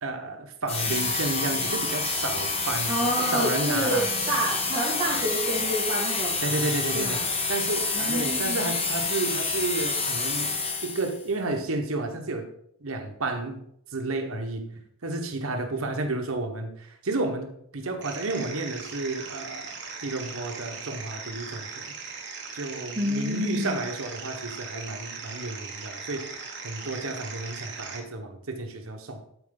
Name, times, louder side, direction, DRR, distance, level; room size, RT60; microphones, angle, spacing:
voice 1, 0.0-4.1 6.4-7.2 7.5-10.5 10.8-12.5 12.8-13.6 13.9-14.7 15.0-21.9 22.5-26.3 26.6-29.2, right 2 dB, 85° right, 5 dB, 1.2 m, -31 dB
sound 1, 0.7-11.2, left 4 dB, 30° left, 1.1 m, -28 dB
voice 2, 2.9-6.4 6.9-7.2 7.9-8.7 22.9-23.8, right 1 dB, 30° right, -10 dB, 2.5 m, -28 dB
sound 2, 18.0-28.0, right 5 dB, 55° right, 1.6 m, -39 dB
11.5 x 4.6 x 3.9 m, 0.71 s
head